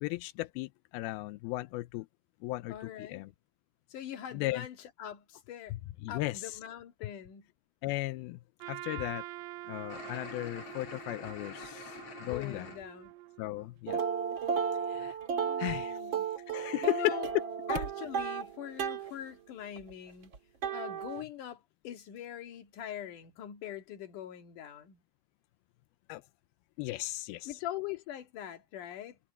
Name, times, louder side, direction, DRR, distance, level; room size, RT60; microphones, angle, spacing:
voice 1, 0.0-2.1 2.4-3.3 4.3-4.7 6.0-6.6 7.8-8.4 8.7-9.2 9.7-12.7 13.4-14.0 14.9-15.2 15.6-16.0 16.5-17.2 26.1-26.2 26.8-27.6, left 18 dB, 85° left, 2.2 m, -36 dB
voice 2, 2.7-3.2 3.9-5.8 6.1-7.5 12.2-13.1 15.3-16.3 16.8-17.3 17.7-20.3 20.7-25.0 27.4-29.2, left 11 dB, 55° left, 3.0 m, -43 dB
Trumpet, 8.6-13.7, right 17 dB, 85° right, 2.9 m, -46 dB
sound 1, 9.9-12.8, left 5 dB, 40° left, 3.6 m, -47 dB
sound 2, 13.9-19.1 19.8-21.2, right 6 dB, 40° right, 1.8 m, -34 dB
omnidirectional pair, 4.9 m